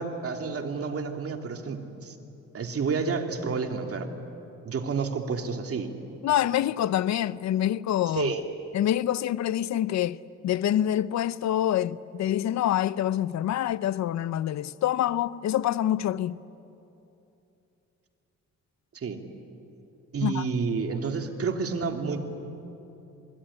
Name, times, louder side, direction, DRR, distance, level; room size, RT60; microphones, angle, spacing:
voice 1, 0.0-2.1 2.5-4.1 4.6-5.9 8.1-8.4 18.9-19.2 20.1-22.2, right 5 dB, 50° right, 2.8 m, -30 dB
voice 2, 6.2-8.3 8.7-10.2 10.4-16.4 20.2-20.5, left 11 dB, 65° left, 0.7 m, -26 dB
26.5 x 21.0 x 9.9 m
cardioid pair, 90°, 30 cm